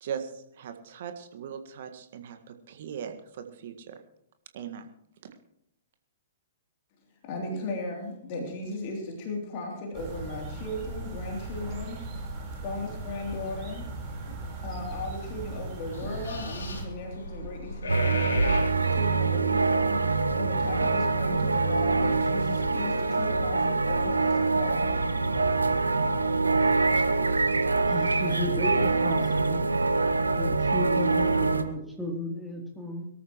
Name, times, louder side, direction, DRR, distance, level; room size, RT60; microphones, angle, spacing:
voice 1, 0.0-3.9 4.5-4.9, right 8 dB, 50° right, 7 dB, 1.7 m, -39 dB
voice 2, 7.2-12.0 12.6-13.9 14.6-18.6 18.8-25.0, left 2 dB, 40° left, 0 dB, 3.2 m, -36 dB
sound 1, 9.9-16.9, right 2 dB, 30° right, 4.5 m, -38 dB
sound 2, 15.9-22.1, left 1 dB, 65° left, 3.2 m, -38 dB
sound 3, 17.9-31.6, right 3 dB, 80° right, 1.1 m, -25 dB
voice 3, 27.9-29.6 30.3-33.1, left 1 dB, ahead, -1 dB, 3.3 m, -34 dB
22.5 x 13.5 x 3.1 m, 0.76 s
figure-of-eight pair, 115°, 0 cm